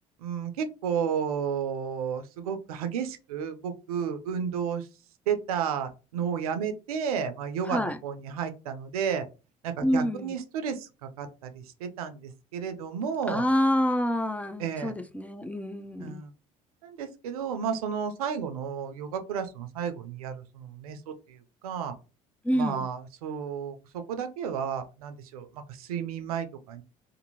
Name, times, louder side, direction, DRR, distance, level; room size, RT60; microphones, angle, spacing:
voice 1, 0.2-4.9 5.3-9.2 9.6-13.4 14.6-14.9 16.0-16.3 16.8-21.9 22.5-26.8, right 7 dB, 85° right, 0.4 m, -32 dB
voice 2, 7.6-8.0 9.8-10.3 13.3-16.2 22.4-22.9, equal, 10° left, 0.4 m, -27 dB
2.6 x 2.6 x 2.8 m
hypercardioid pair, 65°, 18 cm